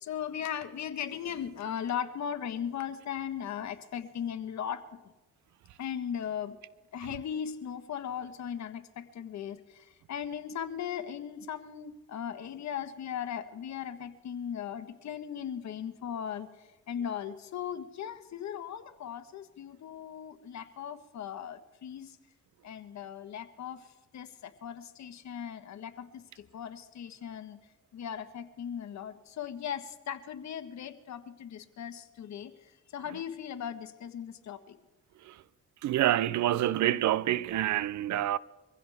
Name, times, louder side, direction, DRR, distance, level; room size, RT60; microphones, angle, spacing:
voice 1, 0.0-4.8 5.8-6.6 6.9-22.2 22.6-23.9 24.1-27.6 27.9-34.8, left 8 dB, 65° left, 1.4 m, -38 dB
voice 2, 35.8-38.4, right 13 dB, 70° right, 0.7 m, -27 dB
24.0 x 16.0 x 3.6 m
cardioid pair, 90°, 30 cm